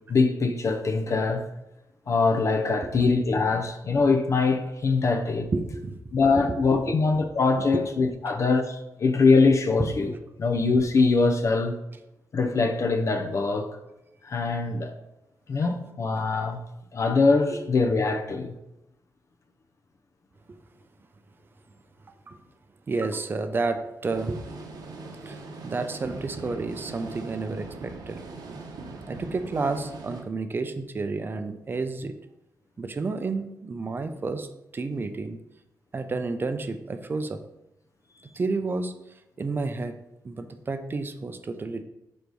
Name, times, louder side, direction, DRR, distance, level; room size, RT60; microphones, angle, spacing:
voice 1, 0.1-1.4 2.1-5.5 6.1-10.1 10.4-11.8 12.3-13.8 14.2-15.0 15.5-16.6 16.9-18.5 38.2-38.3, left 4 dB, 50° left, 0.6 m, -23 dB
voice 2, 5.5-6.0 6.5-6.8 7.6-7.8 17.5-17.6 22.3-22.4 22.9-24.5 25.2-25.4 25.6-28.2 29.1-32.1 32.8-34.5 34.7-35.4 35.9-37.4 38.3-38.9 39.4-40.0 40.2-41.8, right 3 dB, 30° right, 0.5 m, -30 dB
sound 1, 24.1-30.2, right 3 dB, 80° right, 0.9 m, -41 dB
5.2 x 4.0 x 4.7 m
wide cardioid pair, 135°, 7 cm